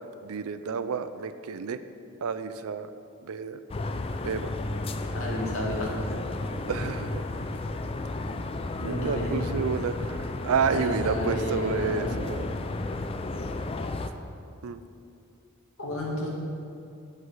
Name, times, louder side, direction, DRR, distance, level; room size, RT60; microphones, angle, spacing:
voice 1, 0.2-1.8 2.2-2.9 3.2-3.6 4.2-4.5 6.7-7.2 8.8-12.5 14.6-14.8, right 5 dB, 75° right, 12 dB, 0.4 m, -30 dB
sound 1, 3.7-14.1, left 2 dB, 25° left, 0.3 m, -33 dB
voice 2, 5.1-5.9 8.7-9.4 10.7-12.2 15.8-16.3, equal, 70° left, -3 dB, 2.0 m, -32 dB
9.5 x 6.2 x 5.5 m, 2.5 s
head